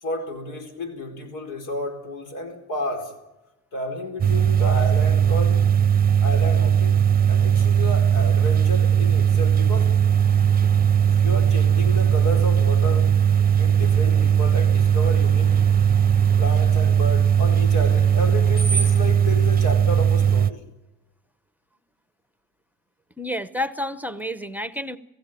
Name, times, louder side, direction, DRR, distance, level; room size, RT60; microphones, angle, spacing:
voice 1, 0.0-3.1 3.7-5.7 6.2-10.0 11.1-13.1 13.6-15.5 16.4-20.6, left 1 dB, 85° left, 4.5 m, -31 dB
sound 1, 4.2-20.5, right 8 dB, 30° right, 0.7 m, -18 dB
Screech, 9.8-19.1, right 3 dB, 25° left, 3.4 m, -38 dB
voice 2, 23.2-25.0, left 1 dB, 5° right, 0.9 m, -29 dB
27.0 x 15.5 x 9.0 m
cardioid pair, 90°, 30 cm